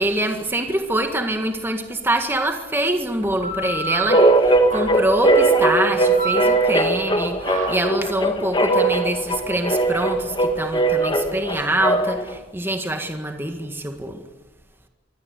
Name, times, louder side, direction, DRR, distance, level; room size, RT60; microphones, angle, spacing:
voice 1, 0.0-14.2, right 1 dB, 10° right, 5 dB, 1.8 m, -25 dB
sound 1, 3.2-12.4, right 3 dB, 45° right, 4.7 m, -32 dB
sound 2, 4.1-12.3, right 2 dB, 25° left, 1.9 m, -19 dB
25.0 x 16.5 x 9.4 m, 1.1 s
head